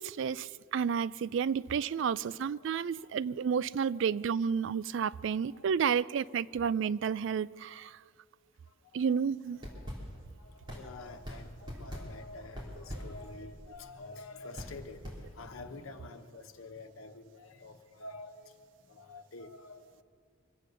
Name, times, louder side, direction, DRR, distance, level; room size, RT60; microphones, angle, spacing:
voice 1, 0.0-8.0 8.9-9.6, right 7 dB, 65° right, 19 dB, 0.3 m, -31 dB
voice 2, 2.2-3.2 4.0-4.3 5.5-5.7 6.6-6.7 8.7-9.2 9.7-10.0 10.4-20.0, left 3 dB, 85° left, 6 dB, 1.1 m, -48 dB
sound 1, 9.5-15.8, equal, 20° right, 3.3 m, -45 dB
24.5 x 8.4 x 6.7 m, 2.3 s
head